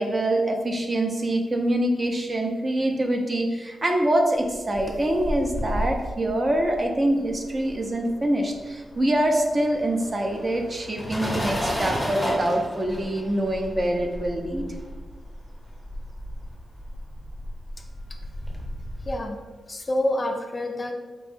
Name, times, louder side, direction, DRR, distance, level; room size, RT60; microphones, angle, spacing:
voice 1, 0.0-14.7, right 1 dB, 30° right, 3 dB, 0.5 m, -25 dB
sound 1, 4.5-8.2 8.4-19.2, equal, 5° left, 0.9 m, -33 dB
voice 2, 19.0-19.4 19.7-20.9, left 1 dB, 30° left, 4 dB, 0.3 m, -27 dB
4.3 x 3.0 x 3.5 m, 1.3 s
wide cardioid pair, 125°, 0 cm